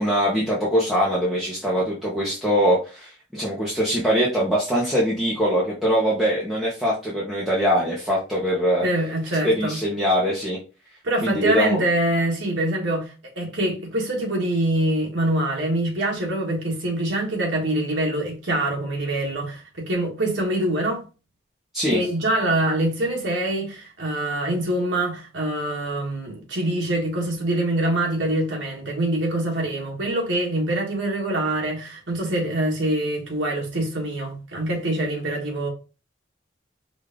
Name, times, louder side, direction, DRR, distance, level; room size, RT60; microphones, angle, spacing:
voice 1, 0.0-8.8 9.4-10.6 11.2-11.8 21.7-22.0, equal, ahead, 1.0 m, -22 dB
voice 2, 8.8-9.8 11.0-21.0 21.9-35.7, right 1 dB, 70° right, 1.7 m, -24 dB
5.0 x 2.7 x 3.7 m
head